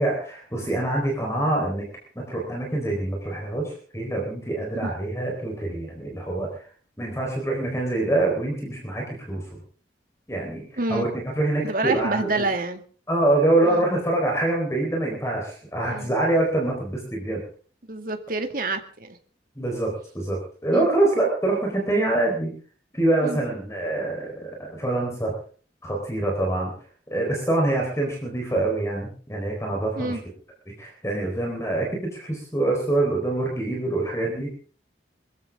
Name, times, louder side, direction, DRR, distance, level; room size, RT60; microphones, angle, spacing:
voice 1, 0.0-1.9 2.1-6.6 7.0-9.4 10.3-10.6 10.9-12.4 13.1-17.4 19.6-22.5 22.9-25.3 25.8-26.7 27.1-30.2 30.7-34.5, right 2 dB, 15° left, 0 dB, 4.2 m, -25 dB
voice 2, 11.6-12.8 13.6-13.9 15.8-16.2 17.9-19.2 20.7-20.9 23.2-23.4 30.0-30.2, right 2 dB, 50° right, 6 dB, 2.1 m, -28 dB
24.5 x 14.5 x 3.7 m, 0.42 s
head